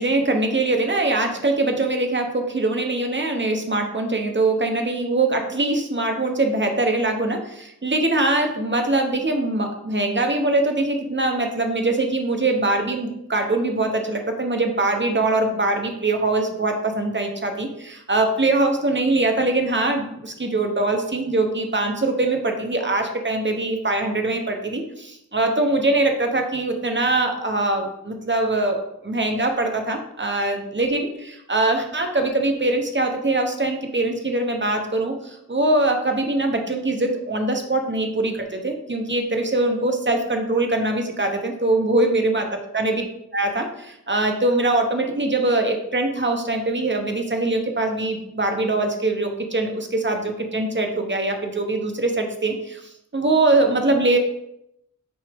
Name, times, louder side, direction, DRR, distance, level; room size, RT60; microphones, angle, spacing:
voice 1, 0.0-42.4 42.7-43.0 43.3-52.8 53.1-54.2, right 2 dB, 35° right, 4 dB, 1.0 m, -22 dB
6.2 x 4.7 x 3.6 m, 0.80 s
wide cardioid pair, 70°, 32 cm